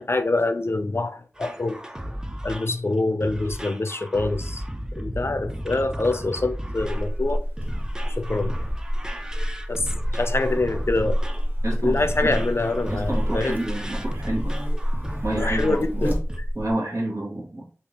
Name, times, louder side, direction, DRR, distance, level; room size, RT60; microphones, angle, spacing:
voice 1, 0.0-1.8 2.4-4.6 4.9-7.4 8.0-8.6 9.7-11.2 11.8-13.6 15.4-16.5, left 2 dB, 50° left, 0.4 m, -25 dB
sound 1, 1.4-15.9 16.3-16.4, equal, 15° right, 0.4 m, -35 dB
Buzz, 6.8-16.7, equal, 35° right, 1.0 m, -28 dB
voice 2, 11.6-12.4 12.8-14.6 15.2-16.1 16.5-17.6, right 1 dB, 75° right, 1.5 m, -29 dB
3.4 x 2.8 x 2.8 m
wide cardioid pair, 50°, 5 cm